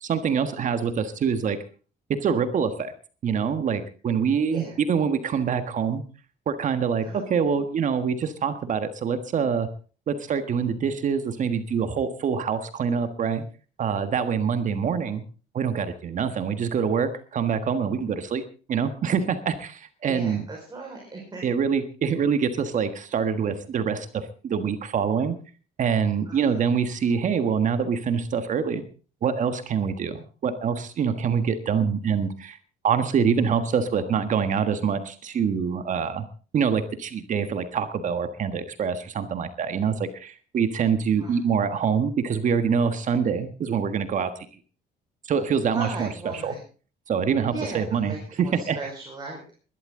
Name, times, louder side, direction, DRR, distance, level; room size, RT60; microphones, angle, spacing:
voice 1, 0.0-1.6 2.2-2.9 3.2-6.0 6.5-9.7 10.1-13.4 13.8-15.2 15.5-18.4 18.7-20.4 21.4-25.4 25.8-28.8 29.2-32.6 32.8-36.3 36.5-44.3 45.2-46.5 47.1-48.8, right 6 dB, 50° right, 9 dB, 1.6 m, -25 dB
voice 2, 20.1-21.4 26.3-26.7 41.2-41.4 45.7-46.6 47.5-49.4, right 3 dB, 25° right, -1 dB, 5.3 m, -37 dB
20.5 x 12.5 x 3.8 m, 0.37 s
cardioid pair, 110°, 17 cm